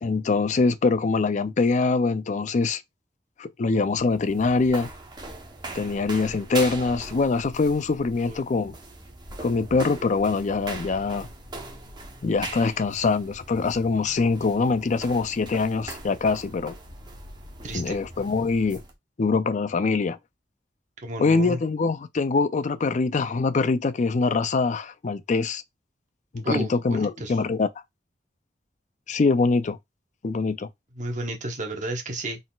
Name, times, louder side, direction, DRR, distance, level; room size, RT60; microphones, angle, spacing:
voice 1, 0.0-2.8 3.4-4.9 5.7-8.8 9.4-11.3 12.2-16.7 17.7-18.8 19.2-20.2 21.2-25.6 26.3-27.7 29.1-29.8 30.2-30.7, left 4 dB, 40° left, 0.4 m, -24 dB
sound 1, 3.6-18.9, right 2 dB, 25° right, 0.9 m, -40 dB
voice 2, 17.6-18.0 21.0-21.6 26.4-27.4 30.9-32.4, right 1 dB, 45° right, 1.2 m, -32 dB
4.0 x 3.9 x 2.4 m
head